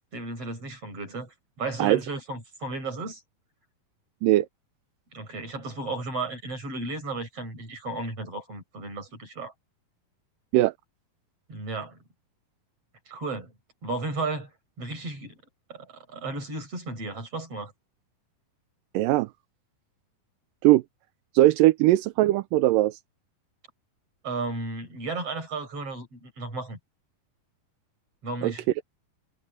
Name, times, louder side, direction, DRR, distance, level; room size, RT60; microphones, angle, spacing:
voice 1, 0.1-3.2 5.1-9.5 11.5-12.0 13.1-13.5 13.8-14.5 14.8-15.4 15.7-17.7 24.2-26.8 28.2-28.6, right 3 dB, 40° right, 8.7 m, -34 dB
voice 2, 18.9-19.3 20.6-20.8 21.3-23.0 28.4-28.5, right 16 dB, 80° right, 2.1 m, -20 dB
omnidirectional pair, 4.3 m